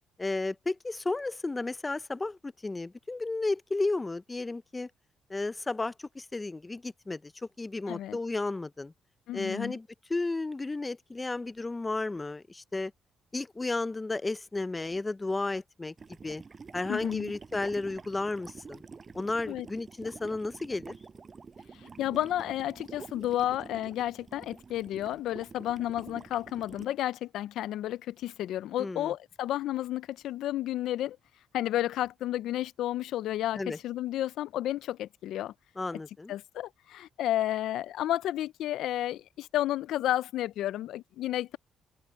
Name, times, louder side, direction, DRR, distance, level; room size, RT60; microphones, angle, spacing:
voice 1, 0.2-4.9 5.3-7.3 7.6-8.9 9.3-12.9 13.3-15.9 16.2-16.4 16.7-18.8 19.1-21.0 28.8-29.1 33.5-33.8 35.8-36.3, left 2 dB, 20° left, 0.6 m, -33 dB
voice 2, 7.9-8.2 9.3-9.8 16.9-17.3 19.5-19.7 22.0-31.2 31.5-35.5 36.3-41.6, left 13 dB, 80° left, 0.4 m, -32 dB
sound 1, 16.0-26.9, right 5 dB, 35° right, 5.8 m, -48 dB
cardioid pair, 90°, 0 cm